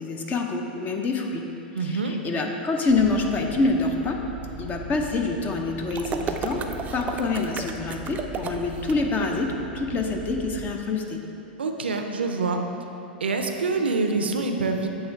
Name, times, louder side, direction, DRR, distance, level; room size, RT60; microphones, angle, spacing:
voice 1, 0.0-1.4 1.8-4.2 4.6-6.6 6.9-11.2, left 3 dB, 30° left, 3 dB, 0.7 m, -26 dB
voice 2, 1.7-2.2 11.6-12.6 13.2-14.9, right 3 dB, 85° right, 4 dB, 0.5 m, -25 dB
sound 1, 2.9-10.6, right 1 dB, 75° left, 1.0 m, -39 dB
sound 2, 5.9-8.9, right 5 dB, 25° right, 0.4 m, -32 dB
8.0 x 3.3 x 4.5 m, 2.9 s
hypercardioid pair, 105°, 6 cm